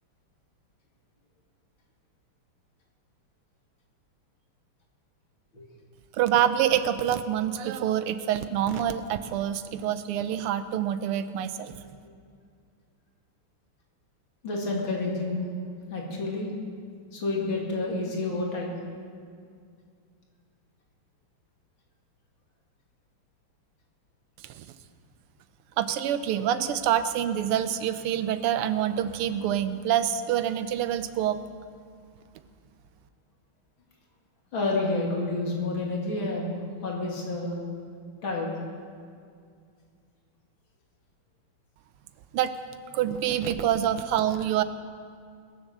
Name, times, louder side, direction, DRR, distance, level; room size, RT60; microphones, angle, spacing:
voice 1, 6.2-11.7 24.6-24.7 25.8-31.4 42.3-42.5 42.9-44.6, right 10 dB, 90° right, 11 dB, 1.6 m, -26 dB
voice 2, 14.4-15.5 15.9-16.5 17.1-18.8 34.5-37.6 38.2-38.5, left 2 dB, 65° left, -1 dB, 3.0 m, -29 dB
20.5 x 7.2 x 6.7 m, 2.2 s
omnidirectional pair, 2.4 m